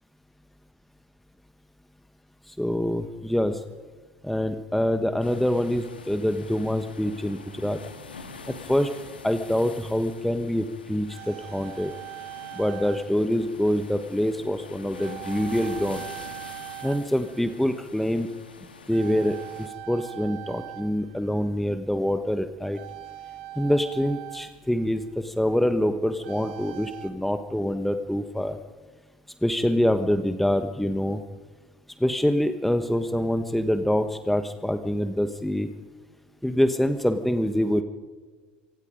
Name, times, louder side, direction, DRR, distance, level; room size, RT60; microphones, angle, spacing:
voice 1, 2.5-3.6 4.2-7.8 8.5-8.9 9.2-11.9 12.5-16.0 16.8-18.3 18.9-22.8 23.6-28.6 29.4-31.2 32.0-35.7 36.4-37.8, equal, 5° left, 9 dB, 1.3 m, -25 dB
sound 1, 5.2-19.7, left 4 dB, 90° left, 1.9 m, -45 dB
sound 2, 9.7-9.8 10.7-13.3 13.5-13.8 15.0-17.7 18.0-18.4 18.9-21.6 22.7-25.1 26.2-27.1, right 14 dB, 75° right, 1.6 m, -41 dB
25.5 x 25.0 x 5.3 m, 1.4 s
hypercardioid pair, 70°, 5 cm